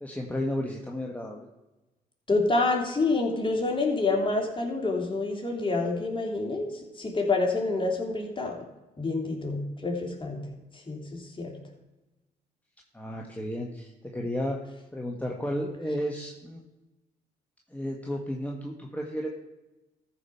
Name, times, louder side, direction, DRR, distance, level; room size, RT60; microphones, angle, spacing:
voice 1, 0.0-1.5 12.9-14.6 14.9-16.6 17.7-19.3, equal, 10° left, 0 dB, 1.6 m, -33 dB
voice 2, 2.3-6.7 7.0-8.6 9.0-10.4 10.9-11.6, left 3 dB, 25° left, 0 dB, 3.2 m, -27 dB
14.0 x 5.0 x 5.8 m, 1.0 s
hypercardioid pair, 50°, 19 cm